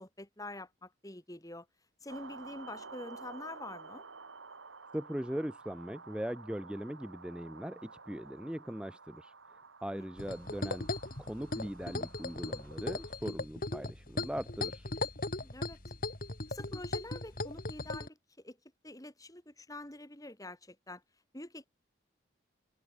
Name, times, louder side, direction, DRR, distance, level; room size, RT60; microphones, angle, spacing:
voice 1, 0.0-1.7 2.0-4.0 9.9-10.1 15.4-15.8 16.5-18.6 18.8-21.0 21.3-21.7, left 1 dB, 20° left, 3.4 m, -46 dB
sound 1, 2.1-13.2, right 4 dB, 80° right, 2.8 m, -52 dB
voice 2, 4.9-9.3 9.8-10.9 11.2-14.9, equal, 5° right, 0.8 m, -40 dB
sound 2, 10.2-18.1, left 2 dB, 45° left, 3.7 m, -38 dB
head